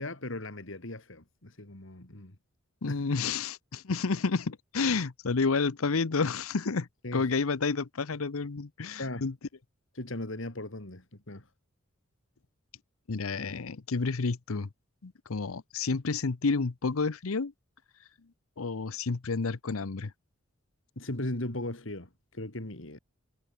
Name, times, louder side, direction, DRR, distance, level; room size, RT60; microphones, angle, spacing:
voice 1, 0.0-2.4 2.9-3.0 7.0-7.3 9.0-9.3 10.0-11.5 21.0-23.0, left 1 dB, 65° left, 2.7 m, -38 dB
voice 2, 2.8-9.3 13.1-14.7 15.0-17.5 18.6-20.1, left 4 dB, 80° left, 0.8 m, -30 dB
head